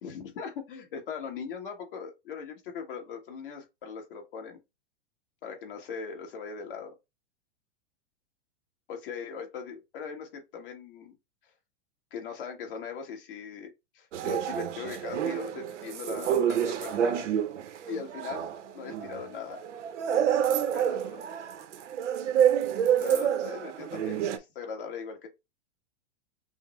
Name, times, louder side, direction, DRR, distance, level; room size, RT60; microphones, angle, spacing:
voice 1, 0.0-4.6 5.4-6.9 8.9-11.1 12.1-17.3 17.9-19.6 20.7-21.3 23.0-25.3, left 6 dB, 50° left, 1.5 m, -40 dB
sound 1, 14.1-24.4, right 9 dB, 85° right, 0.8 m, -28 dB
5.5 x 2.1 x 3.0 m
supercardioid pair, 170°, 35 cm